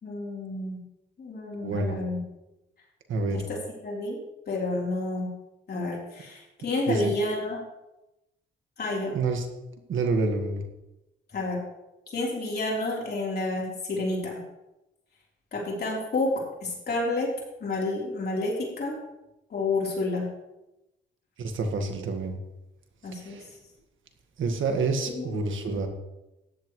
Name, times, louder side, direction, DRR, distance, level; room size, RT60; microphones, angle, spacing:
voice 1, 0.0-0.8 1.2-2.2 3.3-3.6 3.8-4.2 4.5-5.3 5.7-7.6 8.8-9.1 11.3-11.6 12.1-14.4 15.5-16.3 16.6-17.3 17.6-18.9 19.5-20.3 23.0-23.4 25.0-25.3 25.7-25.9, left 2 dB, 50° left, -4 dB, 3.8 m, -30 dB
voice 2, 1.6-2.0 3.1-3.4 6.9-7.1 9.1-9.5 9.9-10.6 21.4-22.4 23.2-23.4 24.4-25.9, right 3 dB, 75° right, 5 dB, 1.8 m, -27 dB
14.5 x 10.5 x 3.2 m, 0.95 s
cardioid pair, 85°, 20 cm